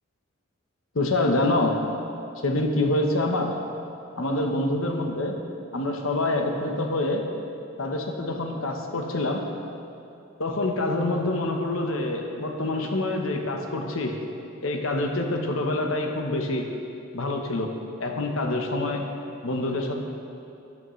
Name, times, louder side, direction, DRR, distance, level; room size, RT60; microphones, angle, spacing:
voice 1, 0.9-1.8 2.4-3.6 4.2-5.4 5.7-7.3 7.8-9.5 10.4-14.2 14.6-16.7 17.1-17.7 18.0-19.1 19.4-20.0, left 2 dB, 80° left, 3 dB, 1.0 m, -26 dB
13.0 x 11.5 x 3.2 m, 2.7 s
head